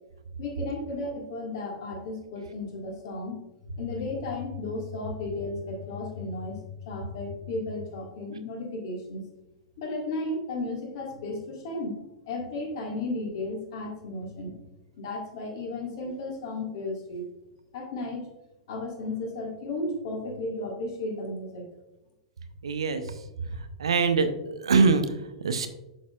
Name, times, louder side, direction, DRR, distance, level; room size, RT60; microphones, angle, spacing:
voice 1, 0.4-3.4 3.7-9.2 9.8-12.0 12.3-14.5 15.0-17.3 17.7-18.3 18.7-21.7, left 2 dB, 55° left, 1 dB, 1.8 m, -34 dB
voice 2, 22.6-23.0 23.8-25.0 25.4-25.7, right 4 dB, 70° right, 10 dB, 0.7 m, -23 dB
11.0 x 4.1 x 2.4 m, 0.98 s
figure-of-eight pair, 95°, 3 cm